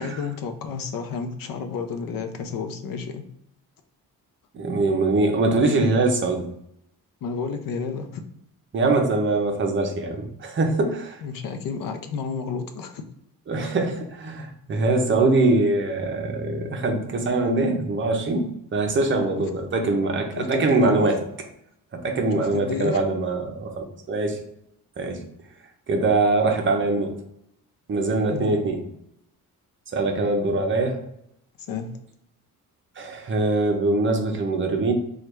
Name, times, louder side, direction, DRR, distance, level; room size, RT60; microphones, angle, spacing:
voice 1, 0.0-3.2 7.2-8.2 11.2-13.0 19.4-19.5 20.4-21.2 22.3-23.0 28.3-28.6 31.7-31.9, left 5 dB, 65° left, 6 dB, 0.6 m, -31 dB
voice 2, 4.5-6.5 8.7-11.2 13.5-21.2 22.0-24.4 25.0-25.2 25.9-27.2 27.9-28.8 29.9-31.0 33.0-34.9, right 2 dB, 35° right, 3 dB, 0.6 m, -23 dB
3.2 x 2.4 x 4.4 m, 0.76 s
cardioid pair, 150°, 37 cm